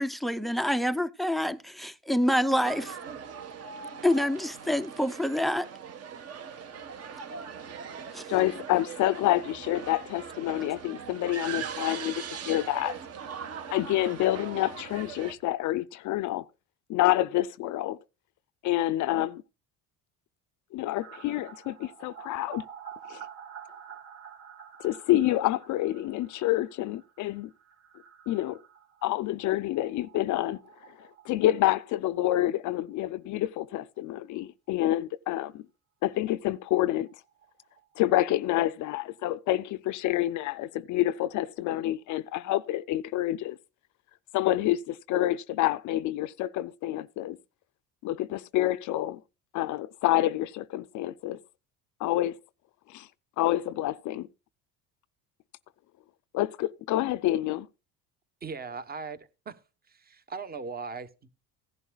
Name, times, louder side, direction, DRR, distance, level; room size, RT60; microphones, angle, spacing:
voice 1, 0.0-3.0 4.0-5.7 8.1-8.2, equal, ahead, 0.5 m, -27 dB
sound 1, 2.6-15.3, right 7 dB, 45° right, 1.4 m, -40 dB
voice 2, 8.3-13.0 13.7-16.4 16.9-18.0 18.6-19.4 20.7-22.6 23.1-23.2 24.8-27.5 28.3-28.6 29.0-30.6 31.0-35.6 36.0-37.1 38.0-43.6 44.3-47.4 48.0-49.2 49.5-51.4 52.0-52.4 52.9-53.1 53.4-54.3 56.3-57.7, left 14 dB, 60° left, 0.5 m, -28 dB
sound 2, 21.0-32.6 32.9-33.0 33.3-33.4 36.4-36.5 36.7-36.8 37.1-38.8 39.1-39.2, right 8 dB, 60° right, 3.2 m, -49 dB
voice 3, 58.4-59.5 59.9-61.3, right 5 dB, 25° right, 1.0 m, -39 dB
16.5 x 11.0 x 2.3 m
cardioid pair, 115°, 34 cm